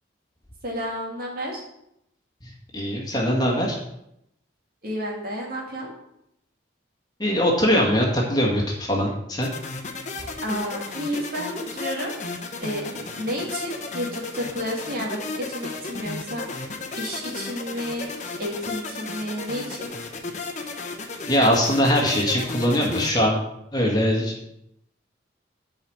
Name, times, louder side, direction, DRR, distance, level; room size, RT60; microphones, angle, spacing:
voice 1, 0.6-1.6 4.8-5.9 10.4-12.1 12.6-18.1 18.4-19.9, equal, 50° right, -2 dB, 2.4 m, -31 dB
voice 2, 2.7-3.8 7.2-9.5 21.3-23.4 23.7-24.3, equal, 20° left, -2 dB, 1.8 m, -21 dB
sound 1, 9.4-23.1, left 3 dB, 40° left, 1.0 m, -34 dB
9.4 x 5.1 x 6.3 m, 0.79 s
head